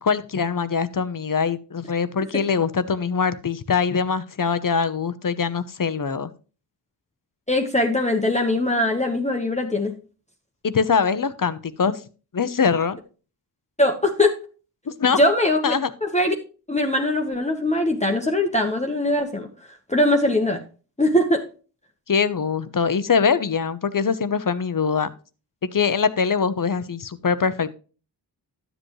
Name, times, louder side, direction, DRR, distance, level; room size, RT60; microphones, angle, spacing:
voice 1, 0.0-6.3 10.6-12.0 12.3-13.0 14.9-15.2 15.6-15.9 22.1-25.1 25.6-27.7, left 6 dB, 50° left, 13 dB, 0.8 m, -23 dB
voice 2, 7.5-9.9 13.8-14.3 15.1-15.7 16.0-16.3 16.7-19.5 19.9-20.6 21.0-21.5, left 1 dB, 15° left, 2 dB, 1.1 m, -21 dB
12.0 x 7.8 x 3.1 m, 0.36 s
wide cardioid pair, 80°, 43 cm